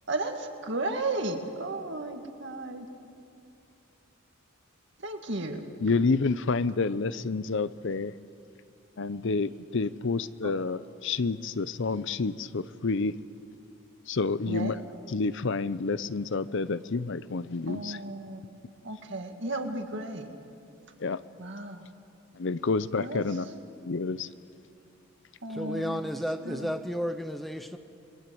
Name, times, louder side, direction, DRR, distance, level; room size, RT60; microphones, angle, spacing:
voice 1, 0.1-2.9 5.0-5.6 10.4-10.5 14.5-14.7 17.7-18.5 18.8-20.3 21.4-21.8 23.0-23.2 25.4-26.0 26.5-26.7, right 2 dB, 55° right, 4 dB, 2.1 m, -34 dB
voice 2, 5.8-8.1 9.0-13.2 14.1-14.8 15.1-18.0 21.0-21.2 22.3-23.5 23.8-24.3, left 4 dB, 60° left, 15 dB, 0.6 m, -29 dB
voice 3, 25.5-27.8, equal, ahead, 8 dB, 0.6 m, -32 dB
28.5 x 22.0 x 7.8 m, 2.6 s
head